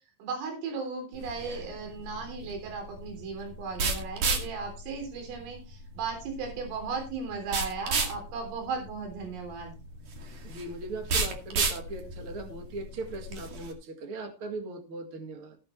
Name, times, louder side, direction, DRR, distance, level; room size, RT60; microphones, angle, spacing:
voice 1, 0.2-9.8, right 5 dB, 85° right, 3 dB, 6.0 m, -36 dB
sound 1, 1.1-13.7, right 3 dB, 50° right, 3.1 m, -34 dB
voice 2, 10.4-15.6, right 3 dB, 65° right, 5 dB, 1.3 m, -39 dB
16.0 x 9.6 x 3.2 m, 0.31 s
omnidirectional pair, 5.7 m